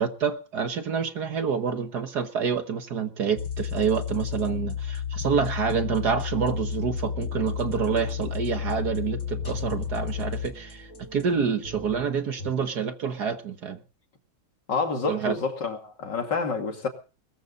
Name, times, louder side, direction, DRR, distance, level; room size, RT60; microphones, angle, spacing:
voice 1, 0.0-13.8 15.1-15.3, right 6 dB, 55° right, 1.7 m, -27 dB
sound 1, 3.4-11.2, left 8 dB, 80° left, 4.4 m, -32 dB
sound 2, 6.1-12.5, right 5 dB, 40° left, 6.0 m, -42 dB
voice 2, 14.7-16.9, left 4 dB, 60° left, 3.1 m, -28 dB
21.0 x 14.0 x 4.1 m
omnidirectional pair, 2.2 m